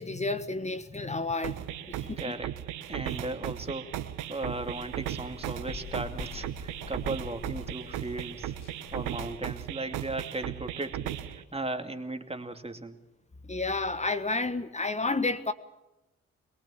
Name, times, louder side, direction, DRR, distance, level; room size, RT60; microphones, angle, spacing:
voice 1, 0.0-2.4 3.0-3.2 13.5-15.5, left 3 dB, 20° left, 11 dB, 1.4 m, -31 dB
sound 1, 1.4-11.4, right 12 dB, 80° right, 1.2 m, -37 dB
voice 2, 2.0-2.6 2.9-8.5 8.9-13.0, right 2 dB, 20° right, 7 dB, 2.5 m, -37 dB
sound 2, 4.4-9.3, left 7 dB, 55° left, 2.4 m, -46 dB
22.5 x 22.5 x 7.2 m, 0.95 s
hypercardioid pair, 45°, 30 cm